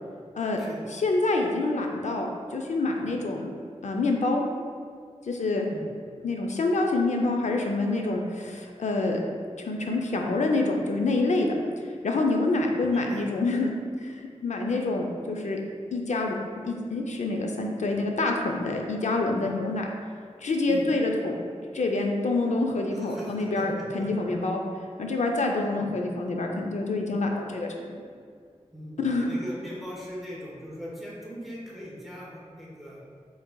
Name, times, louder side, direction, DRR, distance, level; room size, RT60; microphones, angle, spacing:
voice 1, 0.9-3.5 3.8-4.5 5.2-5.7 6.2-9.2 9.6-11.5 12.0-13.7 14.0-15.6 15.9-16.4 16.6-19.9 20.4-21.4 21.7-24.6 25.0-28.0 29.0-29.3, left 2 dB, 75° left, 2 dB, 0.5 m, -27 dB
voice 2, 12.9-13.2 19.4-19.6 20.7-20.9 22.9-23.6 25.8-25.9 28.7-33.0, equal, ahead, -6 dB, 1.0 m, -40 dB
4.5 x 3.8 x 2.3 m, 2.1 s
wide cardioid pair, 85°, 12 cm